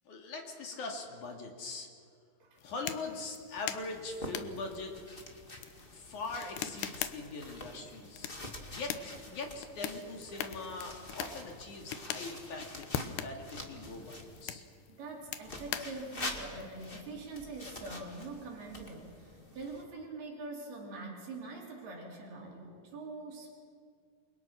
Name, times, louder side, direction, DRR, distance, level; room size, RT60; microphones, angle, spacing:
voice 1, 0.1-1.9 2.6-5.2 5.9-8.3 8.7-14.6, left 3 dB, 50° left, 2 dB, 3.6 m, -42 dB
sound 1, 2.6-16.9, left 10 dB, 80° left, 3.1 m, -43 dB
sound 2, 3.8-14.4 15.4-19.8, left 2 dB, 30° left, 1.0 m, -47 dB
voice 2, 14.9-23.5, right 3 dB, 65° right, -1 dB, 5.6 m, -44 dB
28.5 x 25.0 x 6.0 m, 2.2 s
omnidirectional pair, 4.9 m